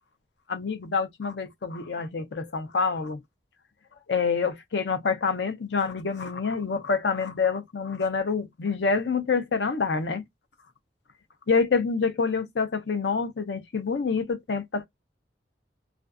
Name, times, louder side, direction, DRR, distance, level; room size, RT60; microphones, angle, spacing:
voice 1, 0.5-3.2 4.1-10.2 11.5-14.9, left 5 dB, 70° left, 0.6 m, -27 dB
2.5 x 2.3 x 2.4 m
head